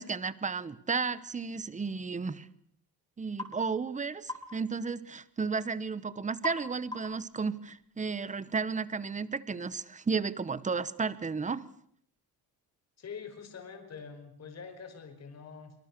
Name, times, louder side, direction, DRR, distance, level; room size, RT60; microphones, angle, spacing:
voice 1, 0.0-2.5 3.2-11.6, right 5 dB, 20° right, 17 dB, 1.1 m, -33 dB
sound 1, 3.4-3.6 4.3-4.5 6.4-6.7 6.9-7.2, left 2 dB, 10° left, 5.6 m, -38 dB
voice 2, 13.0-15.7, left 6 dB, 40° left, 6 dB, 5.5 m, -45 dB
25.5 x 25.0 x 6.8 m, 0.65 s
cardioid pair, 155°, 38 cm